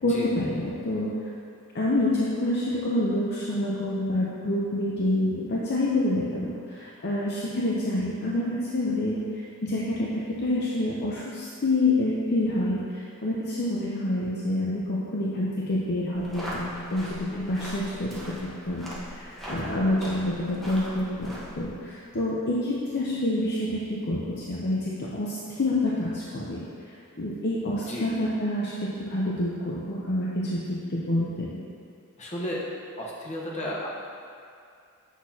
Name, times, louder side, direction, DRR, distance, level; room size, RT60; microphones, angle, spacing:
voice 1, 0.0-1.1 1.7-18.9 19.1-26.6 27.2-31.6, left 1 dB, 50° left, -6 dB, 0.7 m, -27 dB
sound 1, 16.1-21.7, equal, ahead, 1.2 m, -40 dB
voice 2, 32.2-32.6 33.0-33.9, equal, 35° left, -5 dB, 1.2 m, -33 dB
8.2 x 6.3 x 2.8 m, 2.3 s
head